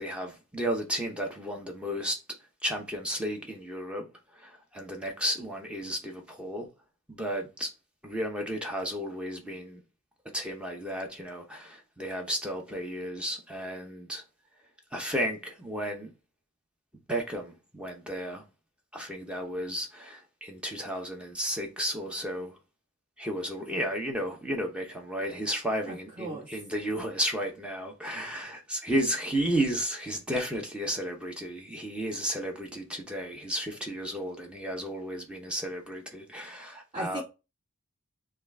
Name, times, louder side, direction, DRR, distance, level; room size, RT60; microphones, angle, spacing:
voice 1, 0.0-2.2 2.6-4.1 4.4-6.7 7.1-7.7 8.0-9.8 10.3-14.2 14.9-16.1 17.1-18.4 18.9-22.6 23.2-37.2, equal, 5° right, 0.8 m, -33 dB
voice 2, 25.8-26.5 36.9-37.2, right 2 dB, 20° right, 1.6 m, -36 dB
6.1 x 2.4 x 3.4 m
head